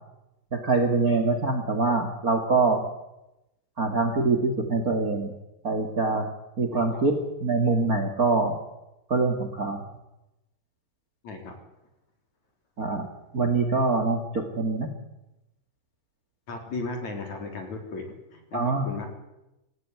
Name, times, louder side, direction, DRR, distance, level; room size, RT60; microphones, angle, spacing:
voice 1, 0.5-2.8 3.8-5.3 5.6-6.3 6.6-8.6 9.1-9.8 12.8-13.1 13.3-14.9 18.5-18.9, right 3 dB, 55° right, 6 dB, 0.9 m, -24 dB
voice 2, 6.7-7.1 11.2-11.6 16.5-19.1, left 3 dB, 40° left, 4 dB, 4.4 m, -36 dB
26.0 x 16.0 x 9.5 m, 0.95 s
omnidirectional pair, 5.5 m